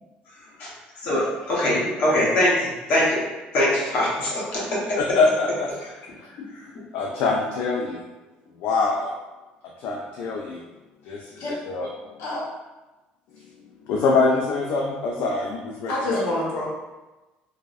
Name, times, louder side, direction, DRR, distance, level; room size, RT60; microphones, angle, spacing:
voice 1, 1.0-3.2 3.5-5.0, left 1 dB, 50° left, -6 dB, 0.8 m, -22 dB
voice 2, 5.0-8.0 8.6-9.1 9.8-10.6 11.0-11.9 13.9-16.3, left 3 dB, 65° left, -2 dB, 0.3 m, -25 dB
voice 3, 15.9-16.7, left 1 dB, 85° left, -5 dB, 0.7 m, -26 dB
2.5 x 2.0 x 2.4 m, 1.1 s
cardioid pair, 155°, 3 cm